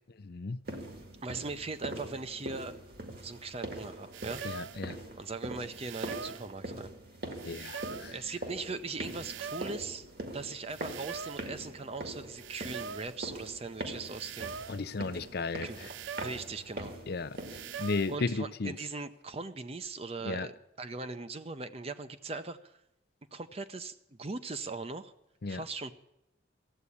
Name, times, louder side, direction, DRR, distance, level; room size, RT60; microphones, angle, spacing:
voice 1, 0.2-0.6 4.4-5.0 7.4-8.1 14.7-15.9 17.1-18.7 20.2-20.5 25.4-25.6, left 3 dB, 50° left, 0.5 m, -35 dB
sound 1, 0.7-17.9, right 1 dB, 50° right, 1.9 m, -43 dB
voice 2, 1.2-2.8 3.2-4.7 5.2-6.9 8.1-10.1 10.3-14.6 15.6-16.9 18.1-22.8 23.3-25.1 25.5-25.9, right 3 dB, 30° right, 0.7 m, -40 dB
sound 2, 4.1-4.9 5.7-6.5 7.4-8.2 9.0-9.9 10.7-11.5 12.4-13.2 14.0-14.9 15.7-16.5 17.4-18.2, right 6 dB, 70° right, 0.4 m, -42 dB
14.5 x 8.3 x 9.8 m
head